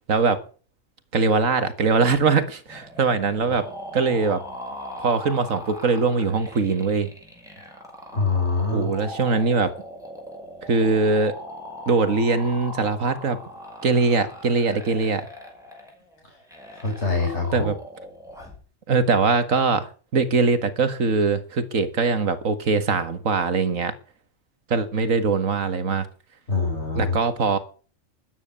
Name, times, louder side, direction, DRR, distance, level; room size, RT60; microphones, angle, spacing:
voice 1, 0.1-0.4 1.1-3.7 3.9-4.4 5.0-7.1 8.7-9.7 10.7-11.4 11.9-13.4 13.8-15.3 17.5-17.7 18.9-23.9 24.7-26.1 27.0-27.6, right 4 dB, 80° right, 2.0 m, -22 dB
sound 1, 2.7-18.6, equal, ahead, 5.9 m, -40 dB
voice 2, 8.1-8.9 16.7-17.7 26.5-27.2, left 4 dB, 55° left, 5.1 m, -24 dB
13.0 x 9.7 x 8.2 m
omnidirectional pair, 1.4 m